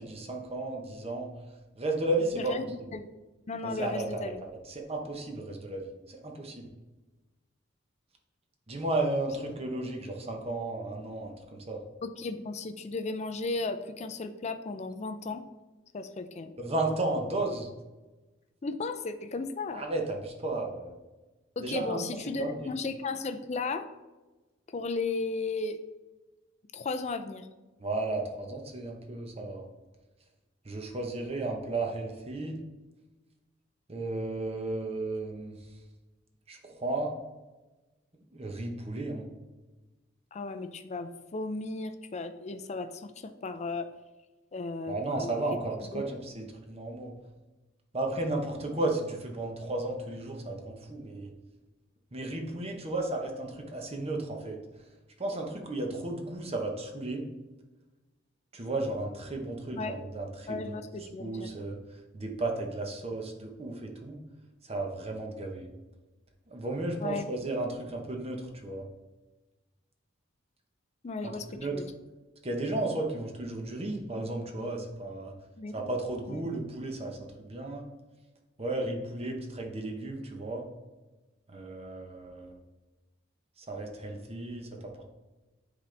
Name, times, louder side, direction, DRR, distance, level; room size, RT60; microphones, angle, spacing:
voice 1, 0.0-1.3 1.8-2.6 3.6-6.7 8.7-11.8 16.6-17.7 19.7-20.9 21.6-22.7 27.8-29.7 30.6-32.6 33.9-35.7 36.5-37.1 38.3-39.3 44.9-47.2 47.9-51.3 52.1-54.6 55.2-57.2 58.5-64.2 64.6-65.7 66.5-68.9 71.2-71.8 72.4-75.3 75.7-77.8 78.6-80.7 81.5-82.6 83.6-84.9, right 2 dB, 30° right, 2 dB, 0.9 m, -34 dB
voice 2, 2.3-3.1 3.5-4.4 12.0-15.4 15.9-16.5 18.6-19.8 21.6-23.9 24.7-25.8 26.7-27.5 40.3-43.9 44.5-45.3 45.9-46.0 59.7-60.0 60.5-61.5 67.0-67.3 71.0-71.4 71.7-71.9 75.6-75.9 76.3-76.5, left 3 dB, 35° left, 9 dB, 0.4 m, -35 dB
9.5 x 3.9 x 3.3 m, 1.1 s
head